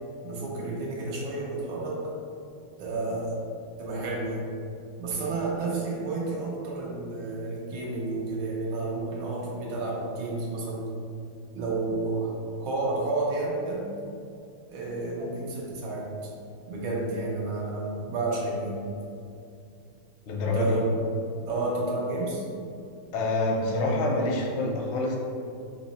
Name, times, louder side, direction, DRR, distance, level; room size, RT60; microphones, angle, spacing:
voice 1, 0.2-2.0 2.8-3.3 3.8-4.5 5.0-10.9 11.5-12.3 12.6-13.9 14.7-16.1 16.7-18.9 20.4-20.9 21.4-22.4, right 2 dB, 85° right, -3 dB, 1.7 m, -31 dB
voice 2, 20.3-20.7 23.1-25.2, left 2 dB, 85° left, -1 dB, 1.6 m, -26 dB
4.4 x 3.0 x 4.1 m, 2.5 s
omnidirectional pair, 2.2 m